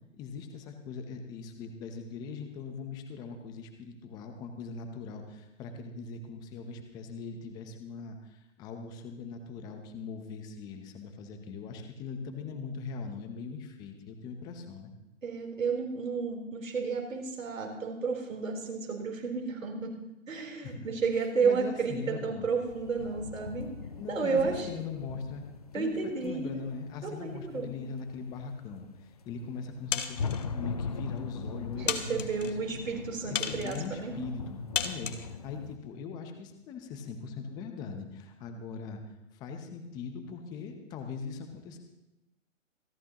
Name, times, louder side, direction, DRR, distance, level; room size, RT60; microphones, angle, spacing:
voice 1, 0.2-14.9 20.6-20.9 21.4-22.5 24.0-25.4 25.7-32.6 33.3-41.8, left 5 dB, 10° left, 5 dB, 0.7 m, -41 dB
voice 2, 15.2-19.9 20.3-23.7 24.1-24.7 25.7-26.6 27.0-27.7 31.8-34.2, right 5 dB, 85° right, 1 dB, 3.9 m, -32 dB
sound 1, 21.5-22.0 22.7-35.8, left 5 dB, 30° left, 0.4 m, -41 dB
sound 2, 29.9-30.5 31.2-31.3 31.9-32.5 33.3-33.9 34.7-35.3, left 7 dB, 70° left, 1.4 m, -33 dB
26.0 x 11.0 x 2.9 m, 0.93 s
hypercardioid pair, 145°, 39 cm